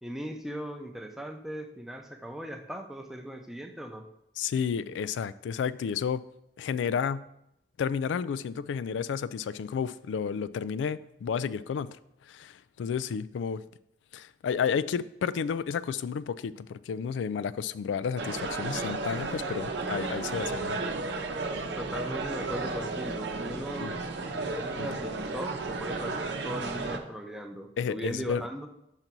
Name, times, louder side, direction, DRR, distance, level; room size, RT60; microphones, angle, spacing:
voice 1, 0.0-4.0 21.8-24.0 24.5-28.7, equal, ahead, 4 dB, 0.5 m, -38 dB
voice 2, 4.4-6.2 6.6-7.2 7.8-12.0 12.3-13.6 14.1-20.8 23.8-23.9 24.8-24.9 27.8-28.4, left 7 dB, 85° left, 16 dB, 0.3 m, -31 dB
sound 1, 18.2-27.0, right 3 dB, 75° right, 0.7 m, -33 dB
5.8 x 3.9 x 6.0 m, 0.80 s
head